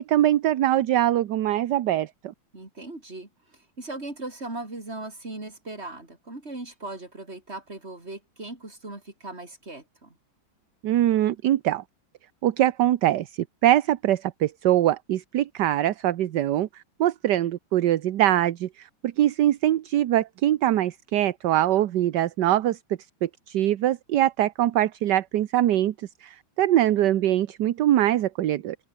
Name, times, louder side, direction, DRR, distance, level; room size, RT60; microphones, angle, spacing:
voice 1, 0.0-2.3 10.8-11.8 12.4-22.8 23.2-28.8, right 13 dB, 65° right, 1.4 m, -23 dB
voice 2, 2.5-10.2, right 2 dB, 30° right, 5.1 m, -38 dB
omnidirectional pair, 2.2 m